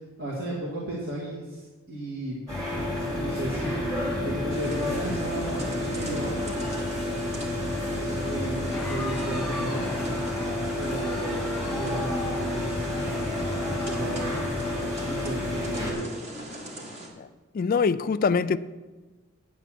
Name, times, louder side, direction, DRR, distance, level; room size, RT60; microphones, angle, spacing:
voice 1, 0.0-2.4 3.2-3.8 4.2-6.5 7.9-9.8 10.8-12.8 13.7-14.5 15.0-16.2, right 1 dB, 50° right, 1.9 m, -34 dB
sound 1, 2.5-15.9, left 1 dB, 15° right, 3.0 m, -30 dB
sound 2, 4.5-17.1, right 1 dB, 30° right, 1.7 m, -41 dB
Crowd, 8.5-16.0, left 1 dB, ahead, 2.1 m, -39 dB
voice 2, 17.5-18.6, left 5 dB, 40° left, 0.3 m, -23 dB
8.4 x 8.2 x 7.5 m
head